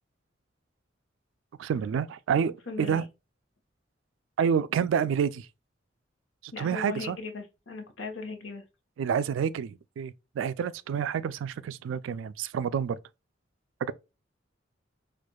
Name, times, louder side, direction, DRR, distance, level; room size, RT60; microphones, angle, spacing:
voice 1, 1.6-3.1 4.4-5.5 6.4-7.2 9.0-13.0 13.8-13.9, right 7 dB, 90° right, 0.3 m, -28 dB
voice 2, 2.7-3.0 6.5-8.6, left 3 dB, 90° left, 1.0 m, -38 dB
4.4 x 2.4 x 2.2 m
head